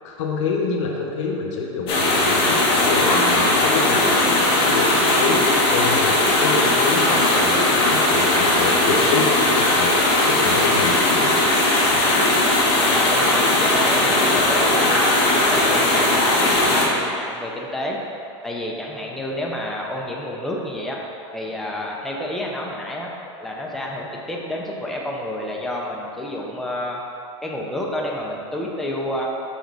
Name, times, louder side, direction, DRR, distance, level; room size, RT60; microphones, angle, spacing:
voice 1, 0.0-5.4 5.7-9.9 10.2-11.4, left 4 dB, 75° left, -1 dB, 1.0 m, -27 dB
sound 1, 1.9-16.9, left 2 dB, 35° left, 1.4 m, -18 dB
voice 2, 12.8-18.0 18.4-21.0 21.3-23.1 23.4-27.0 27.4-29.3, left 1 dB, ahead, -3 dB, 0.5 m, -29 dB
6.5 x 4.1 x 4.7 m, 2.6 s
supercardioid pair, 165°, 16 cm